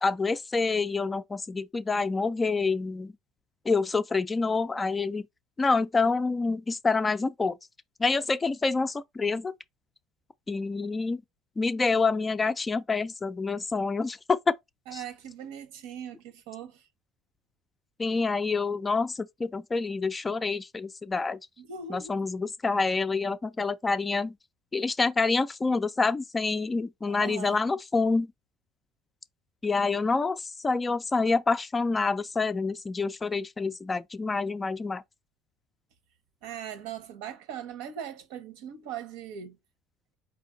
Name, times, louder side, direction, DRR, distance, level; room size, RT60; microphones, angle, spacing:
voice 1, 0.0-3.1 3.7-5.3 5.6-7.6 8.0-9.5 10.5-11.2 11.6-14.6 14.9-15.0 18.0-21.4 21.9-24.4 24.7-28.3 29.6-35.0, left 4 dB, 15° left, 0.3 m, -27 dB
voice 2, 14.9-16.8 21.6-22.2 27.1-27.6 36.4-39.6, right 8 dB, 85° right, 1.0 m, -40 dB
4.4 x 2.6 x 3.8 m
cardioid pair, 150°, 0 cm